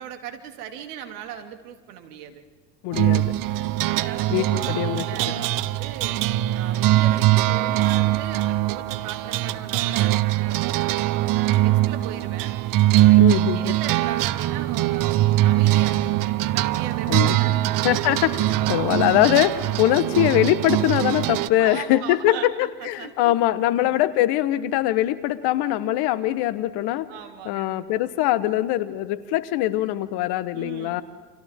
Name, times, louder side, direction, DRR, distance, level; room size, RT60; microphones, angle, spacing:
voice 1, 0.0-2.4 3.3-6.2 6.5-11.0 11.3-12.6 12.9-17.6 18.4-18.6 21.5-23.4 23.7-24.0 27.1-27.7 30.5-31.0, right 9 dB, 65° right, 6 dB, 3.1 m, -39 dB
voice 2, 2.8-3.3 4.3-5.4 13.2-13.7 17.1-17.4 17.8-27.1 27.4-31.0, left 14 dB, 55° left, 15 dB, 1.5 m, -22 dB
sound 1, 2.9-21.5, right 15 dB, 40° right, 0.9 m, -22 dB
30.0 x 27.0 x 3.8 m, 1.5 s
hypercardioid pair, 90°, 48 cm